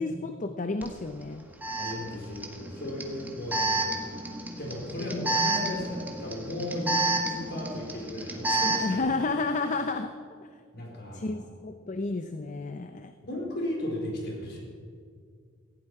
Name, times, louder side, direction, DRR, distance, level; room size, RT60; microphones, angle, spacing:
voice 1, 0.0-1.5 8.8-10.1 11.1-13.1, left 3 dB, 40° left, 8 dB, 0.6 m, -31 dB
Alarm, 0.8-0.9 1.6-9.0, right 2 dB, 10° right, 1.6 m, -30 dB
voice 2, 1.8-3.9 4.6-9.0 10.7-11.4 13.2-14.6, left 1 dB, 55° left, -1 dB, 4.4 m, -35 dB
17.5 x 16.0 x 4.9 m, 2.1 s
head